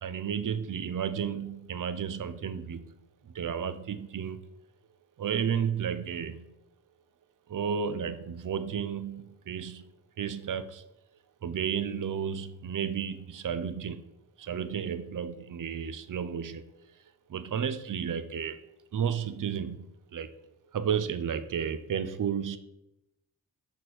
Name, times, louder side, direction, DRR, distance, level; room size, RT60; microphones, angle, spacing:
voice 1, 0.0-2.8 3.2-4.4 5.2-6.5 7.5-9.8 10.2-10.8 11.4-14.0 14.4-16.7 17.3-18.6 18.9-20.3 20.7-22.6, right 7 dB, 60° right, 12 dB, 0.6 m, -32 dB
6.6 x 6.1 x 4.2 m, 0.88 s
cardioid pair, 50°, 35 cm